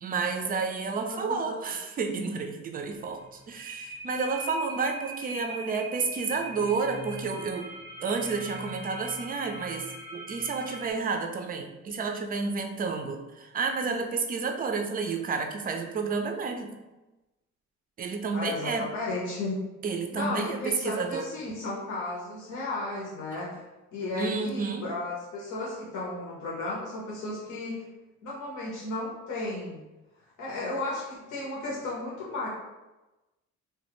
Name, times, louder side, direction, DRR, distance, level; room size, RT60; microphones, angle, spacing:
voice 1, 0.0-7.7 8.0-9.9 10.1-16.7 18.0-18.9 19.8-21.3 24.2-24.8, right 4 dB, 30° right, 5 dB, 0.4 m, -30 dB
sound 1, 2.8-10.9, right 1 dB, 30° left, 0.7 m, -41 dB
voice 2, 18.3-19.6 20.1-23.6 23.9-27.8 28.2-29.8 30.4-32.5, left 2 dB, 75° left, -5 dB, 0.8 m, -34 dB
3.1 x 2.2 x 3.0 m, 1.1 s
cardioid pair, 90°, 30 cm